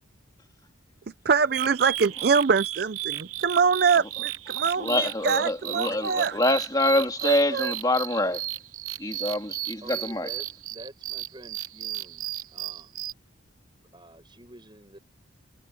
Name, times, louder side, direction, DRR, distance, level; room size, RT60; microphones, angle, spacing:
voice 1, 1.2-6.4 7.2-7.7, right 5 dB, 50° right, 0.5 m, -24 dB
sound 1, 1.5-13.1, right 14 dB, 90° right, 0.9 m, -34 dB
voice 2, 4.6-8.5 9.0-10.3, left 1 dB, 20° left, 3.0 m, -26 dB
voice 3, 9.8-13.1 13.9-15.0, right 1 dB, 20° right, 6.3 m, -48 dB
head